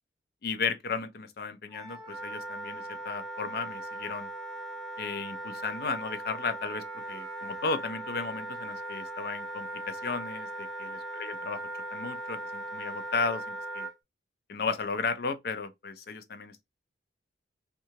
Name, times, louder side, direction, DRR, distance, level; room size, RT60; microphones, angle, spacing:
voice 1, 0.4-4.3 5.0-11.6 11.9-13.9 14.5-16.6, left 4 dB, 50° left, 0.5 m, -34 dB
Wind instrument woodwind instrument, 1.7-13.9, right 1 dB, ahead, 0.8 m, -39 dB
2.7 x 2.3 x 2.8 m
head